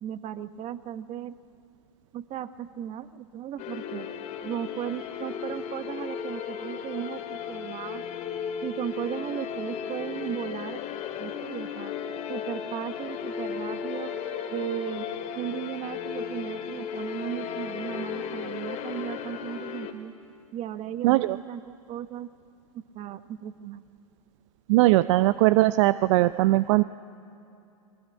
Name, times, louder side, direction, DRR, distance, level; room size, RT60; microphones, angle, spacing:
voice 1, 0.0-1.3 2.1-4.1 4.4-8.0 8.6-10.8 11.2-11.9 12.3-14.1 14.5-15.1 15.3-20.1 20.5-21.6 21.9-22.3 22.7-23.8, right 10 dB, 35° right, 12 dB, 1.2 m, -36 dB
sound 1, 3.6-19.9, left 7 dB, 40° left, 2.6 m, -35 dB
voice 2, 21.0-21.4 24.7-26.8, right 18 dB, 55° right, 15 dB, 0.6 m, -20 dB
24.5 x 22.0 x 9.0 m, 2.7 s
hypercardioid pair, 100°, 18 cm